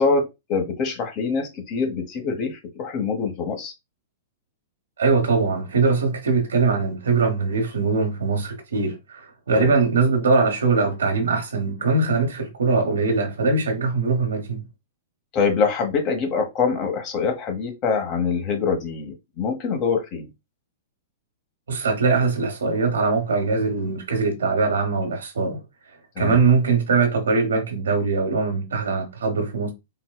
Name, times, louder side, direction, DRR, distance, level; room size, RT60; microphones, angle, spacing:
voice 1, 0.0-3.7 9.5-9.7 15.3-20.3 26.2-26.4, left 5 dB, 40° left, 1.0 m, -24 dB
voice 2, 5.0-9.2 9.5-14.6 21.7-25.6 26.2-29.7, right 4 dB, 85° right, 1.1 m, -21 dB
3.9 x 2.2 x 2.3 m
hypercardioid pair, 125°, 0 cm